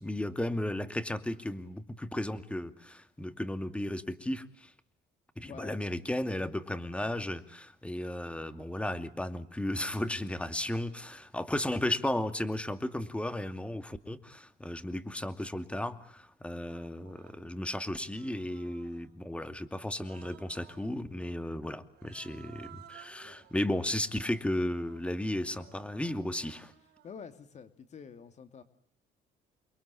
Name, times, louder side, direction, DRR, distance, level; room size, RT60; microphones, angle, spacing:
voice 1, 0.0-4.7 5.4-26.7, left 1 dB, 5° left, 11 dB, 2.5 m, -34 dB
voice 2, 5.4-5.8 23.2-23.5 27.0-28.6, left 6 dB, 45° left, 10 dB, 2.9 m, -47 dB
Human voice, 15.5-15.6 16.6-17.5 18.1-19.2 19.9-21.0 21.9-27.2, right 12 dB, 75° right, 4.9 m, -57 dB
29.0 x 23.5 x 8.6 m, 0.65 s
cardioid pair, 110°, 17 cm